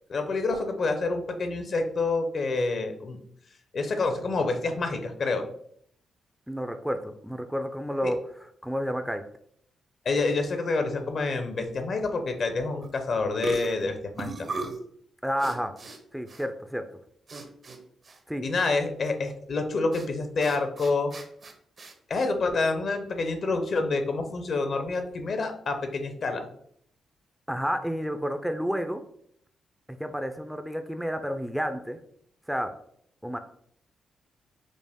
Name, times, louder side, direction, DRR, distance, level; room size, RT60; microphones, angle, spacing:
voice 1, 0.1-3.2 3.7-5.4 8.0-8.1 10.0-14.5 18.4-21.1 22.1-26.5, left 3 dB, 55° left, 7 dB, 0.6 m, -27 dB
voice 2, 6.5-8.2 8.6-9.2 15.2-15.7 16.1-16.8 18.3-18.4 27.5-29.0 29.9-32.0 32.5-32.7 33.2-33.4, equal, 5° right, 8 dB, 0.3 m, -30 dB
sound 1, 12.8-13.0 13.4-14.9 15.4-16.0 16.3-16.4 17.3-17.8 18.0-18.2 19.9-20.1 20.4-21.9, right 3 dB, 50° right, 0.6 m, -37 dB
5.1 x 2.0 x 3.5 m, 0.66 s
cardioid pair, 70°, 0 cm